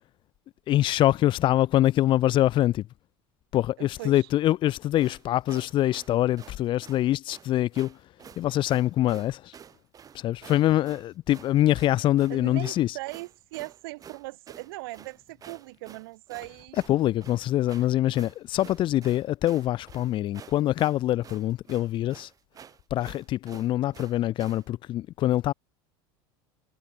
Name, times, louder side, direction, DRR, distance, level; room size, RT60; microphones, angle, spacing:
voice 1, 0.7-2.9 3.5-8.0 8.4-9.5 10.1-13.0 16.9-22.3 22.9-25.5, left 14 dB, 40° left, 0.9 m, -24 dB
voice 2, 3.8-4.1 12.3-16.8, right 22 dB, 80° right, 4.1 m, -39 dB
sound 1, 5.0-24.7, right 8 dB, 30° right, 7.8 m, -50 dB
supercardioid pair, 125°, 12 cm